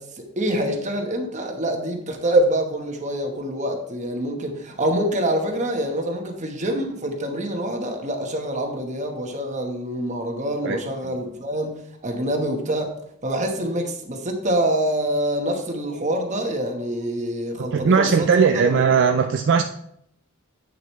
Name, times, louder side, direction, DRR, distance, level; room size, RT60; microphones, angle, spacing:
voice 1, 0.0-13.0 13.2-18.9, right 1 dB, 35° right, 3 dB, 1.2 m, -25 dB
voice 2, 17.7-19.6, right 5 dB, 60° right, 5 dB, 0.4 m, -18 dB
8.6 x 6.6 x 3.1 m, 0.73 s
head